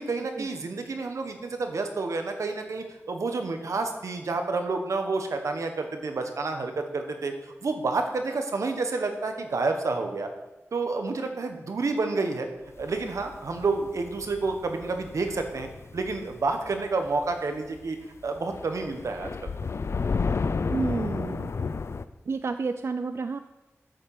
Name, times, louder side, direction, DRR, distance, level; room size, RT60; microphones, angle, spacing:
voice 1, 0.0-10.3 10.7-12.5 12.8-19.5, right 3 dB, 85° right, 5 dB, 1.2 m, -29 dB
sound 1, 12.8-17.4 17.7-17.8 18.3-22.0, left 4 dB, 60° left, 0.4 m, -32 dB
voice 2, 20.7-21.5 22.3-23.4, right 4 dB, 55° right, 9 dB, 0.4 m, -30 dB
8.9 x 6.4 x 6.7 m, 1.0 s
wide cardioid pair, 90°, 5 cm